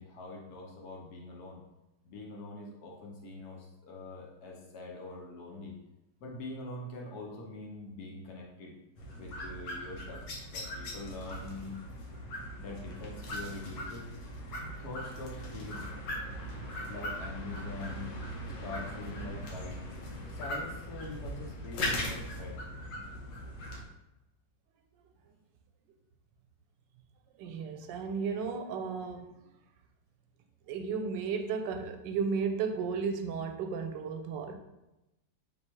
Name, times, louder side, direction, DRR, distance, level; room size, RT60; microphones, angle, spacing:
voice 1, 0.0-1.7 2.0-5.8 6.2-8.8 9.1-10.2 10.5-11.7 12.6-14.1 14.6-15.9 16.9-18.1 18.6-19.8 20.3-22.6, left 2 dB, 65° left, -1 dB, 1.3 m, -44 dB
sound 1, 9.0-23.8, equal, 90° left, 1.5 m, -39 dB
voice 2, 27.4-29.3 30.7-34.6, right 5 dB, 90° right, 5 dB, 1.3 m, -34 dB
3.7 x 3.0 x 4.4 m, 0.95 s
omnidirectional pair, 1.9 m